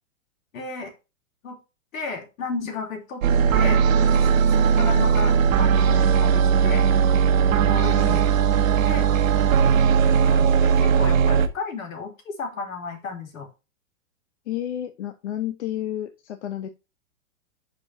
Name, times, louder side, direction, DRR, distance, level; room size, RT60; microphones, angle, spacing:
voice 1, 0.5-0.9 1.4-1.6 1.9-3.2 3.5-3.8 4.1-6.8 7.5-8.3 8.8-9.1 10.0-13.5, left 4 dB, 80° left, 3 dB, 3.5 m, -33 dB
sound 1, 3.2-11.5, right 7 dB, 75° right, 1.3 m, -18 dB
voice 2, 14.5-16.7, left 11 dB, 55° left, 7 dB, 1.0 m, -30 dB
10.5 x 5.2 x 2.9 m, 0.28 s
supercardioid pair, 170°, 40 cm